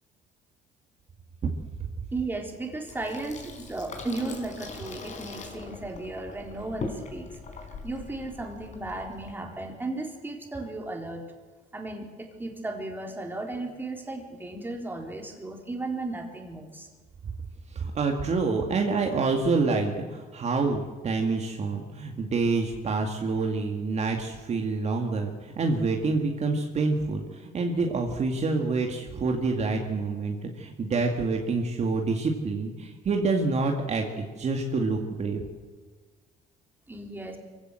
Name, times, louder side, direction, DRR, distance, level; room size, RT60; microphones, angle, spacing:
voice 1, 2.1-7.3 7.8-11.2 11.7-16.9 36.9-37.4, right 2 dB, 10° right, 2 dB, 4.0 m, -35 dB
Water tap faucet / Sink (filling or washing), 2.9-9.3, left 3 dB, 45° left, 4.8 m, -41 dB
voice 2, 17.7-35.4, right 3 dB, 40° right, 2 dB, 2.2 m, -27 dB
24.0 x 16.0 x 7.8 m, 1.4 s
cardioid pair, 110°, 17 cm